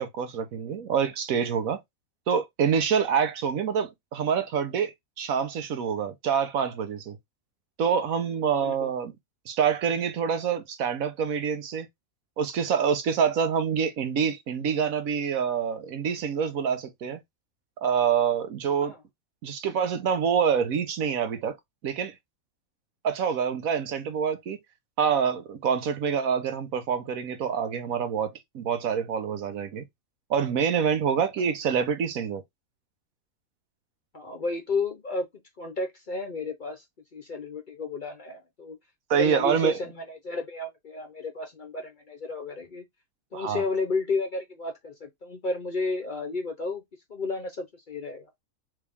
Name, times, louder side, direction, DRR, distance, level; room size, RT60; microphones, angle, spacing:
voice 1, 0.0-1.8 2.3-7.2 7.8-9.1 9.5-11.9 12.4-17.2 17.8-18.9 19.4-21.6 21.8-22.1 23.0-24.6 25.0-29.9 30.3-32.4 39.1-39.8 43.3-43.6, right 7 dB, 75° right, 1.2 m, -26 dB
voice 2, 8.6-8.9 18.8-19.0 34.1-35.3 35.6-36.8 37.1-38.8 39.1-42.8 43.3-46.8 47.1-48.3, left 3 dB, 45° left, 0.7 m, -32 dB
3.6 x 3.2 x 3.4 m
omnidirectional pair, 1.5 m